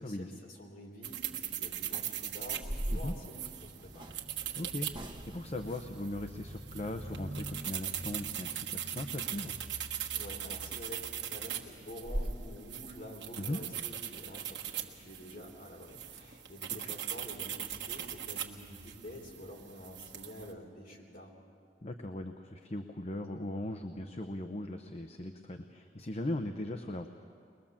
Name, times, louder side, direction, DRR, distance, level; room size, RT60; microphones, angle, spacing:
voice 1, 0.0-4.3 10.1-21.4, equal, 55° left, 0 dB, 3.5 m, -48 dB
sound 1, 1.0-20.5, right 9 dB, 85° right, 1.4 m, -40 dB
sound 2, 1.9-2.0 2.4-4.2 4.9-5.6 10.1-10.2 10.6-10.8 11.2-11.3 11.6-11.7 12.0-12.4, right 1 dB, 25° right, 1.1 m, -38 dB
voice 2, 4.5-9.5 13.4-13.6 16.8-16.9 21.8-27.1, left 1 dB, 40° left, 6 dB, 0.8 m, -39 dB
21.5 x 21.5 x 7.3 m, 2.3 s
head